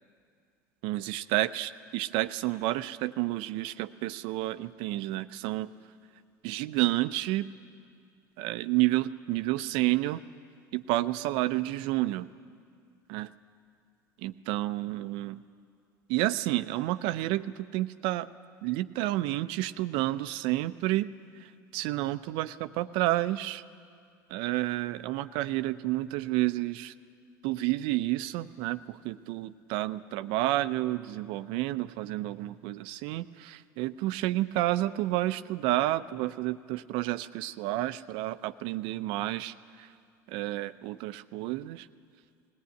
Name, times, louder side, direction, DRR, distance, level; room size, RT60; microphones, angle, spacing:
voice 1, 0.8-5.7 6.4-7.5 8.4-10.2 10.7-12.3 13.1-13.3 14.2-15.4 16.1-18.3 18.6-21.1 21.4-23.6 24.3-26.9 27.4-39.9 40.3-41.9, right 16 dB, 65° right, 12 dB, 0.7 m, -30 dB
19.5 x 17.5 x 9.3 m, 2.2 s
hypercardioid pair, 80°, 10 cm